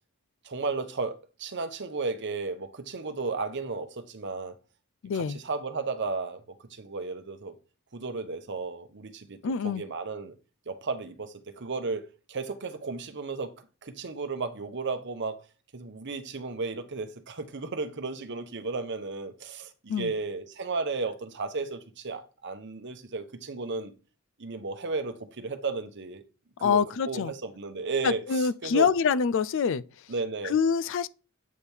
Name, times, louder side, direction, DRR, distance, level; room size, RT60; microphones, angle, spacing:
voice 1, 0.4-4.5 5.1-6.4 6.7-7.6 7.9-9.4 9.6-10.3 10.7-13.5 13.8-15.4 15.7-23.9 24.4-26.2 26.6-28.9 30.1-30.5, right 4 dB, 55° right, 0.9 m, -34 dB
voice 2, 5.0-5.4 9.4-9.8 19.9-20.1 26.6-27.3 28.0-29.8 30.4-31.1, left 6 dB, 60° left, 0.4 m, -25 dB
8.3 x 3.5 x 4.5 m
head